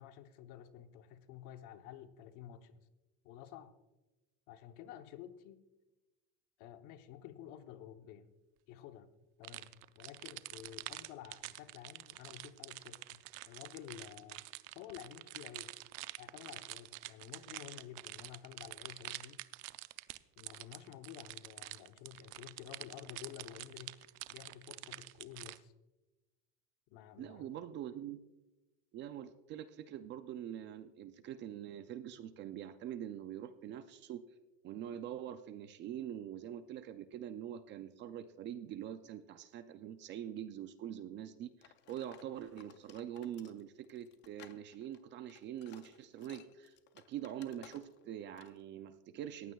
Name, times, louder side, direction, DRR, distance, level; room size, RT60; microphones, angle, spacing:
voice 1, 0.0-2.9 3.2-3.7 4.5-5.6 6.6-8.3 8.7-9.1 9.4-14.4 14.7-15.7 16.2-19.4 20.4-24.0 24.3-25.7 26.9-27.5, left 10 dB, 55° left, 9 dB, 0.9 m, -51 dB
sound 1, 9.4-25.6, right 20 dB, 75° right, 0.6 m, -47 dB
voice 2, 27.2-28.2 28.9-34.2 34.6-46.8 47.1-49.5, right 10 dB, 35° right, 11 dB, 0.4 m, -44 dB
sound 2, 41.6-48.1 48.4-48.6, left 11 dB, 30° left, 0.6 m, -60 dB
18.5 x 15.5 x 2.3 m, 1.1 s
cardioid pair, 175°, 36 cm